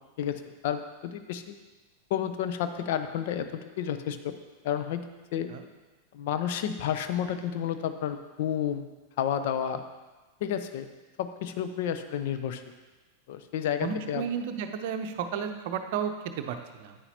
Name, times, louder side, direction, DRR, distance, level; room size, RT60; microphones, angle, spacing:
voice 1, 0.2-1.6 2.1-4.3 4.6-5.0 5.3-5.5 6.1-8.9 9.2-9.8 10.4-10.9 11.2-12.6 13.3-14.2, left 9 dB, 50° left, 9 dB, 0.6 m, -31 dB
voice 2, 13.8-17.0, right 7 dB, 50° right, 7 dB, 0.7 m, -33 dB
9.7 x 9.4 x 2.9 m, 1.2 s
figure-of-eight pair, 90°, 0 cm